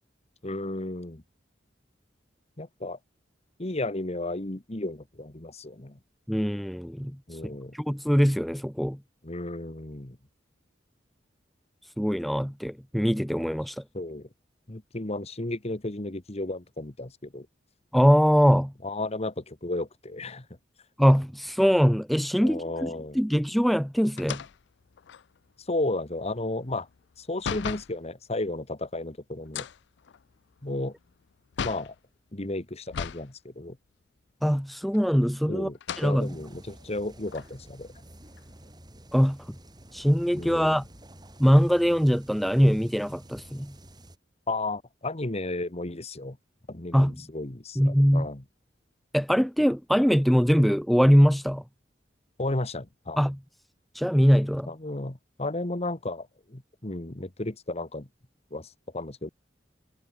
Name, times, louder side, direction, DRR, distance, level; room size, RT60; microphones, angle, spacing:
voice 1, 0.4-1.2 2.6-3.0 3.6-6.0 7.3-7.8 9.2-10.2 13.9-14.3 14.7-17.5 18.8-20.5 22.4-23.2 25.7-26.9 27.2-29.7 30.6-30.9 31.6-31.9 32.3-33.8 35.5-35.8 36.0-37.9 40.3-40.8 44.5-46.4 46.7-48.4 52.4-53.2 54.7-58.1 58.5-59.3, left 2 dB, 35° left, 1.6 m, -33 dB
voice 2, 6.3-7.4 7.7-9.0 12.0-13.8 17.9-18.7 21.0-24.4 34.4-35.7 36.0-36.3 39.1-39.6 39.9-40.8 41.4-43.7 46.9-47.2 47.8-48.3 49.1-51.6 53.2-53.4 53.9-54.7, equal, ahead, 0.3 m, -22 dB
sound 1, 24.2-28.0 29.4-32.0 32.9-33.3 33.7-33.8 34.8-35.4 35.7-36.1 36.8-36.9 37.3-38.7, left 7 dB, 65° left, 0.4 m, -37 dB
sound 2, 36.2-44.2, right 1 dB, 25° right, 5.4 m, -50 dB
head